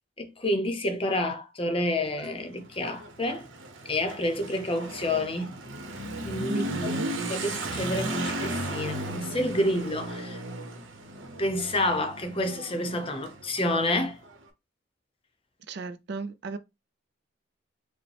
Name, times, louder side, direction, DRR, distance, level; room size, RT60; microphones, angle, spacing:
voice 1, 0.2-3.5 3.9-5.6 6.3-6.9 7.3-10.4 11.4-14.2, left 1 dB, 30° left, 0.7 m, -29 dB
Motorcycle / Accelerating revving vroom, 2.0-14.4, right 1 dB, 75° right, 0.9 m, -36 dB
voice 2, 6.5-7.1 15.7-16.6, right 3 dB, 60° right, 0.4 m, -34 dB
5.0 x 2.1 x 3.3 m
head